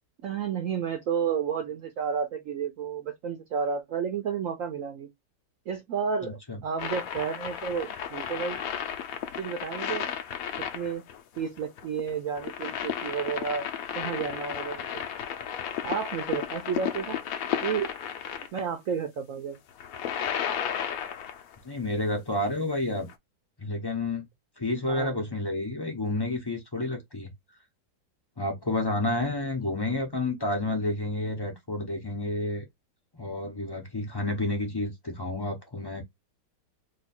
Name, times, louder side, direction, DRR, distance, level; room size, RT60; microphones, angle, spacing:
voice 1, 0.2-5.1 5.7-8.6 9.4-10.2 10.7-11.0 11.4-13.7 13.9-15.0 15.8-17.2 17.6-17.9 18.5-19.6 24.8-25.2, right 7 dB, 70° right, 0.8 m, -31 dB
voice 2, 6.2-6.6 21.6-23.1 23.6-24.2 24.6-27.3 28.4-32.6 33.2-36.0, left 2 dB, 35° left, 0.4 m, -30 dB
sound 1, 6.8-18.6 19.7-21.5 23.1-23.2, left 9 dB, 70° left, 0.9 m, -33 dB
2.9 x 2.3 x 4.1 m
omnidirectional pair, 1.9 m